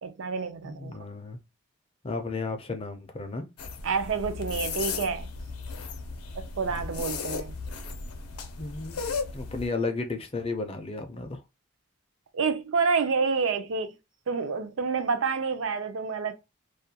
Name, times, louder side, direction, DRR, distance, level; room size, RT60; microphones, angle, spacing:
voice 1, 0.0-1.0 3.8-5.3 6.3-7.5 12.3-14.0 14.3-16.3, right 5 dB, 60° right, 0.4 m, -28 dB
voice 2, 0.6-1.4 2.0-3.5 8.6-9.0 9.3-11.4, left 3 dB, 25° left, 0.4 m, -33 dB
sound 1, 3.6-9.7, left 4 dB, 90° left, 0.6 m, -35 dB
2.4 x 2.2 x 2.7 m
head